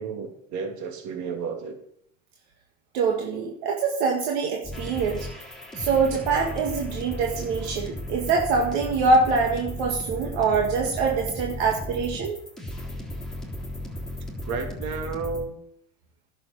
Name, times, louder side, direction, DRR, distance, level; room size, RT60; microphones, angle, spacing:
voice 1, 0.0-1.8 14.4-15.6, right 5 dB, 60° right, 4 dB, 2.8 m, -32 dB
voice 2, 2.9-5.3 5.7-12.4, right 4 dB, 80° right, 0 dB, 2.1 m, -24 dB
sound 1, 4.6-15.4, left 1 dB, ahead, 3.5 m, -35 dB
11.0 x 6.9 x 7.2 m, 0.72 s
supercardioid pair, 115°, 32 cm